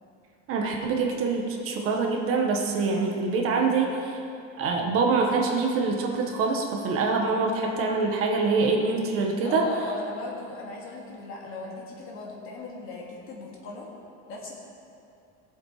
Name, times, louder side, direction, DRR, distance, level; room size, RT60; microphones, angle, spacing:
voice 1, 0.5-4.2 4.6-9.7, right 4 dB, 50° right, 0 dB, 1.6 m, -25 dB
voice 2, 9.4-13.9 14.3-14.5, left 2 dB, 45° left, -3 dB, 2.9 m, -38 dB
18.5 x 7.5 x 5.0 m, 2.6 s
cardioid pair, 160°, 29 cm